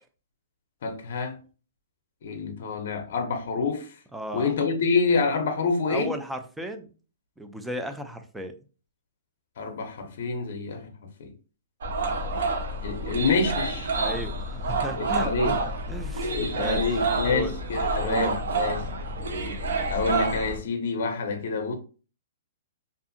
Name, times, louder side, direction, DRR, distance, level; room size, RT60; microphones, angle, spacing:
voice 1, 0.8-1.4 2.2-4.0 4.3-6.1 9.6-10.8 11.2-11.3 12.8-13.9 15.0-15.6 16.3-18.8 19.9-21.7, left 4 dB, 60° left, 0.5 m, -27 dB
voice 2, 4.1-4.5 5.9-6.9 7.4-8.5 14.0-15.6 15.9-16.8 17.2-17.6 17.9-18.3, equal, 5° right, 0.3 m, -35 dB
sound 1, 11.8-20.6, right 3 dB, 75° right, 0.7 m, -28 dB
2.6 x 2.4 x 2.5 m
hypercardioid pair, 155°, 0 cm